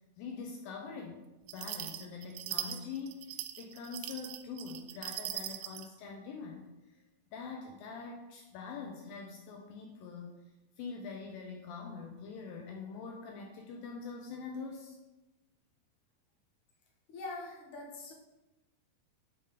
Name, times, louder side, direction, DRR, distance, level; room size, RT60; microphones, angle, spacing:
voice 1, 0.2-1.2 1.5-6.6 7.3-10.3 10.8-15.0, left 5 dB, 85° left, 1 dB, 2.0 m, -44 dB
sound 1, 1.5-5.9, right 13 dB, 85° right, 2.5 m, -40 dB
voice 2, 17.1-18.1, left 2 dB, 60° left, -2 dB, 2.3 m, -43 dB
9.7 x 3.7 x 5.0 m, 1.0 s
omnidirectional pair, 5.1 m